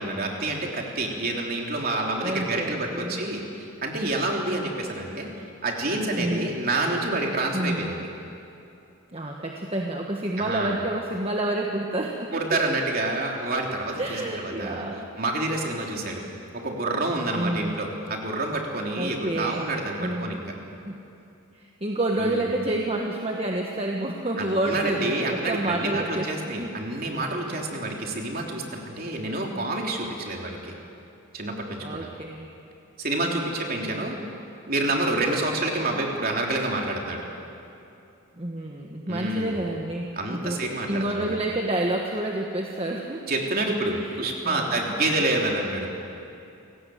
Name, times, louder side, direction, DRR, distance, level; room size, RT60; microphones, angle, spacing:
voice 1, 0.0-5.3 5.6-8.0 10.4-10.8 12.3-14.8 15.2-16.2 16.5-20.5 22.2-22.5 24.4-30.7 31.3-32.1 33.0-34.1 34.7-37.2 39.1-39.6 40.2-41.3 43.3-45.9, right 2 dB, 45° right, 0 dB, 3.4 m, -28 dB
voice 2, 2.2-3.2 4.0-4.1 6.1-6.5 7.5-7.9 9.1-12.3 14.0-15.1 17.3-17.8 19.0-19.7 20.0-20.4 20.8-21.0 21.5-26.7 31.8-32.5 33.2-33.9 38.4-43.2 43.9-45.0, right 1 dB, 25° right, 0 dB, 1.5 m, -29 dB
28.5 x 18.5 x 7.9 m, 2.7 s
head